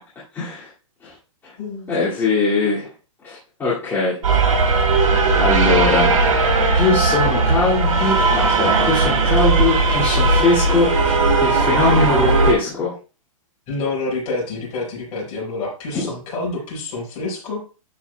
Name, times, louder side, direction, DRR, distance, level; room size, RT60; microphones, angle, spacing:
voice 1, 0.3-0.7 1.0-1.1 1.9-2.9 3.2-4.2 5.4-6.2 6.7-12.9 15.9-16.0, left 3 dB, 10° left, -9 dB, 2.3 m, -21 dB
voice 2, 1.6-1.9 13.7-17.6, left 3 dB, 35° left, -2 dB, 5.3 m, -27 dB
sound 1, 4.2-12.5, right 3 dB, 85° right, 4.0 m, -17 dB
12.0 x 7.2 x 2.3 m, 0.34 s
hypercardioid pair, 150°, 18 cm